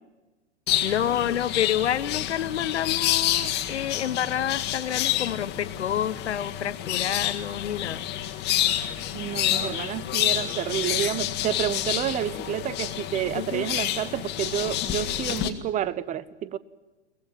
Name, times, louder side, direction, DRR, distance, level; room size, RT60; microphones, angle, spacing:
sound 1, 0.7-15.5, left 12 dB, 30° left, 1.8 m, -28 dB
voice 1, 0.8-8.1 13.3-13.7, left 10 dB, 70° left, 14 dB, 1.2 m, -28 dB
voice 2, 9.1-16.6, right 11 dB, 20° right, 19 dB, 0.8 m, -29 dB
23.0 x 19.0 x 7.5 m, 1.2 s
figure-of-eight pair, 105°, 35 cm